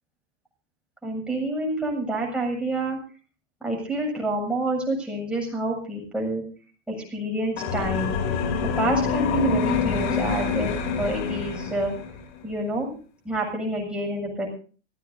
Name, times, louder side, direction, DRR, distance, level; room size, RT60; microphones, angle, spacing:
voice 1, 1.0-3.0 3.6-6.4 6.9-8.4 8.8-10.7 11.0-11.9 12.4-12.9 13.2-14.5, right 1 dB, 5° right, -2 dB, 7.5 m, -28 dB
sound 1, 7.6-12.2, left 5 dB, 55° left, 3.2 m, -26 dB
25.5 x 16.5 x 2.7 m, 0.38 s
supercardioid pair, 150°, 39 cm